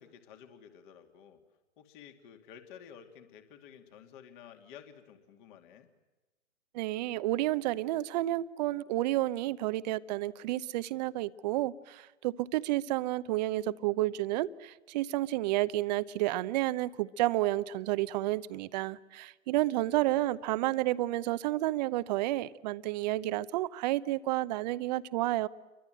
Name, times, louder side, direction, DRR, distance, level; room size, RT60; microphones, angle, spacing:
voice 1, 0.0-1.4 1.8-5.9 19.5-20.3, left 8 dB, 40° left, 2.8 m, -53 dB
voice 2, 6.7-25.5, right 16 dB, 35° right, 0.8 m, -31 dB
29.0 x 24.0 x 7.8 m
hypercardioid pair, 130°, 37 cm